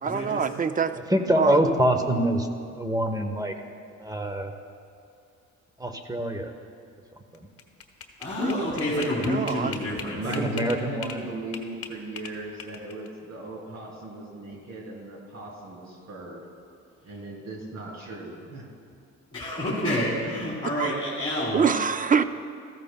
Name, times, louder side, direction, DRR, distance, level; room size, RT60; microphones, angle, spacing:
voice 1, 0.0-1.0 1.4-1.6 8.4-8.7 9.2-9.8 20.8-20.9 21.5-22.2, right 6 dB, 30° right, 12 dB, 0.4 m, -25 dB
voice 2, 1.1-2.5 2.7-3.6 4.0-4.5 5.8-6.5 7.3-7.5 10.2-11.3, right 1 dB, 10° right, 5 dB, 0.9 m, -25 dB
sound 1, 7.3-11.2 11.5-13.1, left 6 dB, 50° left, 1.1 m, -39 dB
voice 3, 8.2-10.2 19.3-21.6, left 1 dB, 15° left, -9 dB, 3.1 m, -28 dB
voice 4, 10.1-16.4 17.0-18.6, right 2 dB, 60° right, -2 dB, 3.1 m, -37 dB
14.5 x 14.0 x 2.2 m, 2.3 s
cardioid pair, 90°, 30 cm